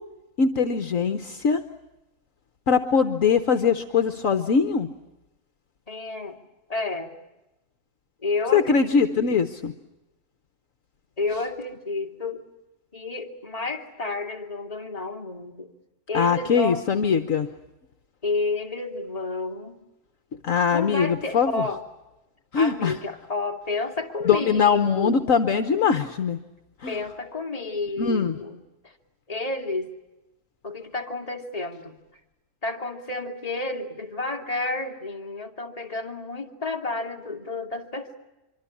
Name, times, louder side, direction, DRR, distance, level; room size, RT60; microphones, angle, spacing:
voice 1, 0.4-1.6 2.7-4.9 8.5-9.7 16.1-17.5 20.4-21.6 22.5-22.9 24.2-26.4 26.8-27.0 28.0-28.4, left 6 dB, 60° left, 9 dB, 1.5 m, -22 dB
voice 2, 5.9-6.4 6.7-7.1 8.2-9.4 11.2-12.4 12.9-15.7 16.1-16.9 18.2-19.8 20.7-21.8 22.5-25.2 26.9-28.9 29.3-29.9 30.6-32.0 32.6-38.2, left 3 dB, 25° left, 2 dB, 2.5 m, -31 dB
25.5 x 24.5 x 8.6 m, 0.96 s
omnidirectional pair, 1.6 m